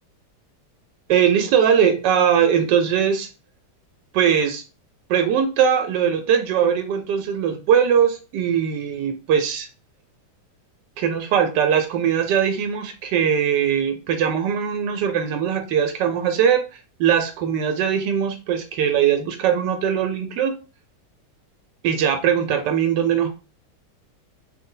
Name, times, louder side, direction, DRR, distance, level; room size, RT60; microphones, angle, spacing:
voice 1, 1.1-3.3 4.1-4.6 5.1-9.7 11.0-16.6 17.0-20.5 21.8-23.3, right 8 dB, 85° right, 6 dB, 1.2 m, -20 dB
3.2 x 2.6 x 3.8 m, 0.33 s
omnidirectional pair, 1.8 m